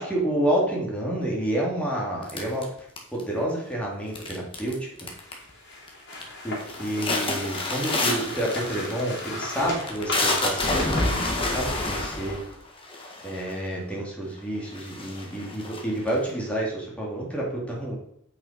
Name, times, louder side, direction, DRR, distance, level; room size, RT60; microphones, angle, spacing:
voice 1, 0.0-2.7 3.1-5.1 6.4-12.4 13.2-18.0, right 1 dB, 5° left, -3 dB, 2.7 m, -29 dB
sound 1, 2.3-3.4 4.2-4.7 5.0-5.5 5.9-6.3 6.6-13.7 14.3-14.4 14.7-16.3, left 2 dB, 25° left, 1.6 m, -28 dB
sound 2, 5.1-12.3, left 2 dB, 50° left, 3.2 m, -37 dB
8.9 x 5.8 x 5.2 m, 0.75 s
head